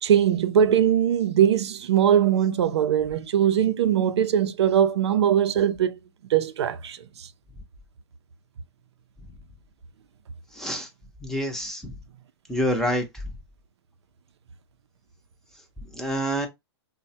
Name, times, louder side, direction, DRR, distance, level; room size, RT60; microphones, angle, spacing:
voice 1, 0.0-6.0 6.3-7.0, right 9 dB, 75° right, 0.4 m, -21 dB
voice 2, 10.5-10.9 11.2-11.9 12.5-13.2 15.9-16.5, equal, 5° left, 0.5 m, -27 dB
3.1 x 2.1 x 2.7 m
hypercardioid pair, 135°, 14 cm